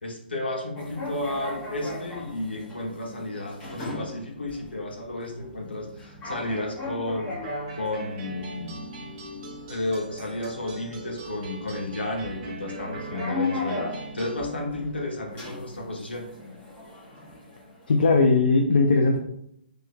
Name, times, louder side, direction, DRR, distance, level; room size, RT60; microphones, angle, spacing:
voice 1, 0.0-7.3 7.7-8.8 9.7-13.9 14.1-16.3, left 1 dB, 75° left, 0 dB, 1.1 m, -32 dB
sound 1, 0.8-18.3, left 2 dB, 20° left, 1.2 m, -38 dB
sound 2, 7.4-14.4, right 2 dB, 30° right, 0.8 m, -40 dB
voice 2, 17.9-19.2, left 3 dB, 60° left, 3 dB, 0.4 m, -19 dB
4.5 x 3.2 x 2.3 m, 0.76 s
figure-of-eight pair, 130°, 6 cm